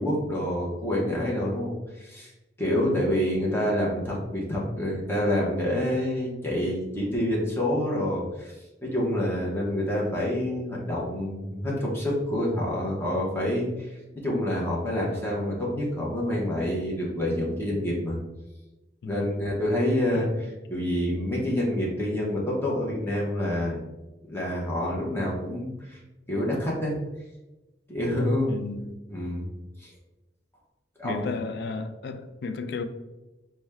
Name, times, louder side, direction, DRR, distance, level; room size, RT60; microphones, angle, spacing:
voice 1, 0.0-2.3 2.6-8.5 8.8-18.2 19.0-23.8 24.3-26.0 26.3-27.0 27.9-28.6 29.1-29.5 29.8-29.9 31.0-31.3, left 1 dB, 15° left, 0.8 m, -27 dB
voice 2, 2.7-3.1 19.0-19.5 20.1-20.3 28.5-28.9 31.0-32.8, left 4 dB, 65° left, 0.3 m, -34 dB
4.4 x 2.2 x 3.4 m
head